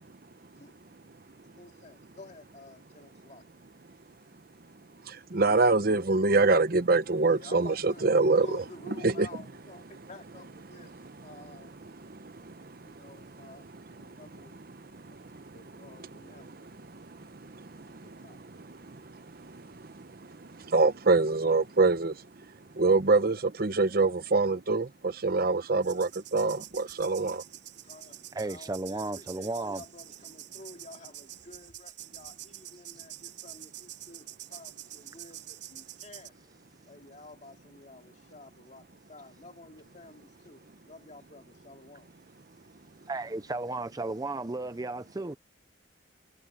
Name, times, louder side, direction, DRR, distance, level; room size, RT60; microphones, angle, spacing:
voice 1, 1.6-3.4 7.3-8.1 8.4-11.7 12.9-13.6 13.9-14.6 15.5-16.6 18.0-18.4 27.8-36.3 36.9-40.6 40.9-42.1, left 2 dB, 40° left, 2.5 m, -51 dB
voice 2, 5.0-9.3 11.3-13.1 13.4-16.1 16.4-27.4, right 3 dB, 50° right, 0.8 m, -27 dB
sound 1, 25.8-36.3, right 14 dB, 75° right, 6.9 m, -47 dB
voice 3, 28.3-29.8 43.1-45.4, right 2 dB, 20° right, 0.5 m, -34 dB
head